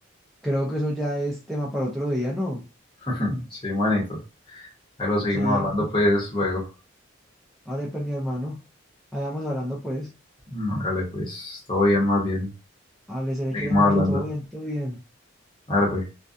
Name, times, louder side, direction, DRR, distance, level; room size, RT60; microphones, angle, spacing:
voice 1, 0.4-2.6 5.2-5.7 7.7-8.6 9.1-10.1 13.1-15.0, equal, ahead, -6 dB, 0.4 m, -29 dB
voice 2, 3.0-4.2 4.5-4.7 5.0-6.6 10.5-12.5 13.5-14.2 15.7-16.0, left 1 dB, 25° left, -5 dB, 0.9 m, -23 dB
2.4 x 2.2 x 2.5 m, 0.31 s
head